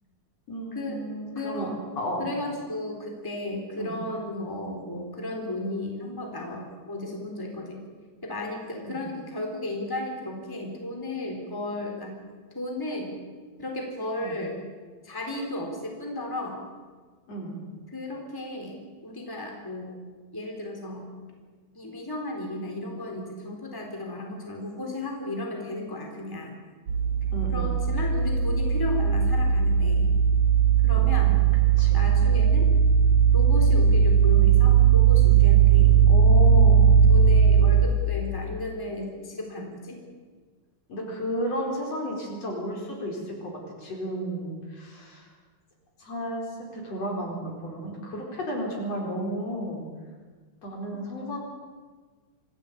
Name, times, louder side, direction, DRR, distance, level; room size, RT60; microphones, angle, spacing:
voice 1, 0.5-1.7 2.0-2.3 3.8-3.9 8.8-9.0 14.2-14.4 17.3-17.6 27.3-27.7 30.9-31.4 31.8-32.0 36.1-37.0 40.9-45.3 46.0-46.5 46.7-49.8 50.6-51.4, equal, 55° left, 0 dB, 5.5 m, -33 dB
voice 2, 1.3-1.8 2.2-7.8 8.2-12.2 12.5-13.1 13.6-14.6 15.0-16.6 17.9-18.8 19.0-19.9 20.3-21.1 21.7-26.5 27.5-30.1 30.8-31.4 31.9-32.7 33.3-36.0 37.1-40.0, left 2 dB, 5° left, 1 dB, 3.7 m, -34 dB
sound 1, 26.9-37.9, right 7 dB, 80° right, 4.0 m, -18 dB
25.5 x 16.5 x 8.7 m, 1.5 s
omnidirectional pair, 3.4 m